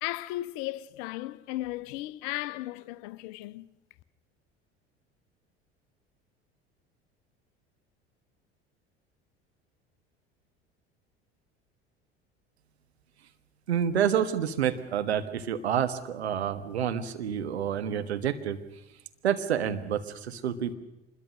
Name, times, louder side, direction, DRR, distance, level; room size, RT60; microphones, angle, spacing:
voice 1, 0.0-3.7, left 17 dB, 55° left, 0.9 m, -35 dB
voice 2, 13.7-18.6 19.2-20.7, right 9 dB, 75° right, 1.5 m, -28 dB
25.5 x 21.5 x 6.5 m
figure-of-eight pair, 65°, 32 cm